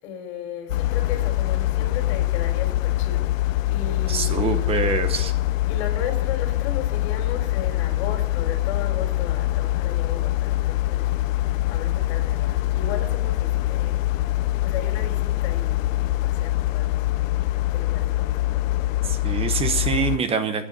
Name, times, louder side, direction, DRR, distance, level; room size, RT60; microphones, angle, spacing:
voice 1, 0.0-3.4 3.6-4.9 5.2-14.3 14.6-19.3, left 7 dB, 50° left, 4 dB, 4.6 m, -36 dB
sound 1, 0.7-20.2, left 16 dB, 75° left, 0.5 m, -24 dB
voice 2, 4.1-5.3 19.0-20.7, right 6 dB, 15° right, 9 dB, 0.8 m, -25 dB
23.5 x 9.6 x 4.0 m, 0.81 s
hypercardioid pair, 140°, 40 cm